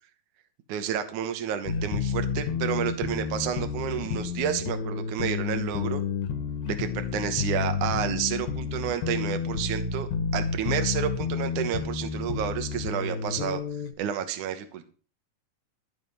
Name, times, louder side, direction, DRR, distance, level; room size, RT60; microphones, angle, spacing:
voice 1, 0.7-6.0 6.8-13.6 14.0-14.8, right 9 dB, 70° right, 8 dB, 2.5 m, -30 dB
sound 1, 1.7-13.9, left 6 dB, 80° left, 2.9 m, -30 dB
15.0 x 6.8 x 5.6 m, 0.38 s
omnidirectional pair, 4.0 m